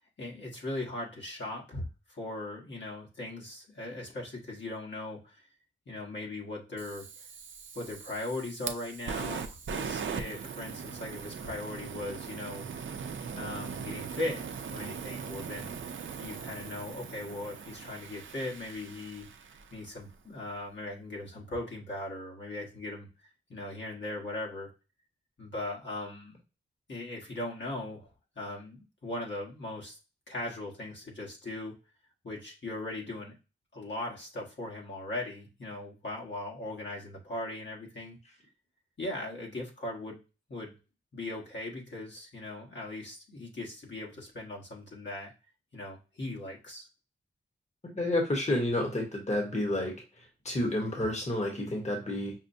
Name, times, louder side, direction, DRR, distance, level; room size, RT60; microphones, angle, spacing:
voice 1, 0.2-5.5 5.9-7.3 7.7-12.9 13.3-15.8 16.2-19.3 19.7-24.7 25.4-26.4 26.9-28.1 28.3-30.0 30.3-31.8 32.2-33.4 33.7-38.2 39.0-40.2 40.5-40.7 41.1-45.3 45.7-46.9, left 2 dB, 60° left, -3 dB, 1.4 m, -39 dB
Fire, 6.8-19.9, right 6 dB, 65° right, 0.5 m, -40 dB
voice 2, 47.9-52.3, left 1 dB, 35° left, 0 dB, 1.2 m, -30 dB
5.9 x 2.2 x 2.7 m, 0.31 s
wide cardioid pair, 75°, 21 cm